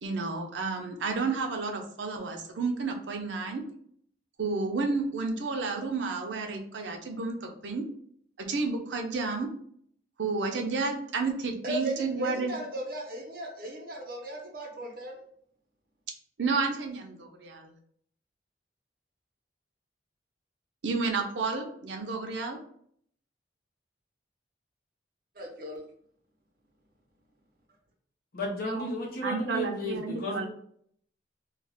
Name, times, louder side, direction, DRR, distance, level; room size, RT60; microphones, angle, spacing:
voice 1, 0.0-3.6 4.4-7.8 8.4-9.5 10.2-12.5 16.4-17.7 20.8-22.6 28.6-28.9 29.2-30.5, right 4 dB, 85° right, 3 dB, 0.6 m, -31 dB
voice 2, 11.6-15.2 25.3-25.9, right 1 dB, 55° right, 0 dB, 0.8 m, -36 dB
voice 3, 28.3-30.5, left 1 dB, 55° left, -3 dB, 0.8 m, -33 dB
2.3 x 2.3 x 3.5 m, 0.65 s
head